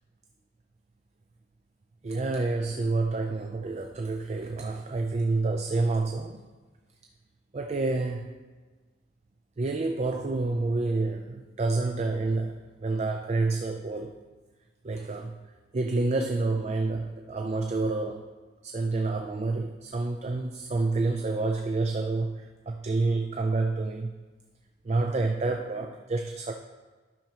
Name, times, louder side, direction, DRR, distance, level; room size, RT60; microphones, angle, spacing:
voice 1, 2.0-6.4 7.5-8.3 9.6-14.1 14.8-15.4 15.7-18.3 18.6-24.1 24.8-26.5, right 3 dB, 35° right, 4 dB, 0.4 m, -28 dB
12.0 x 6.0 x 2.8 m, 1.3 s
head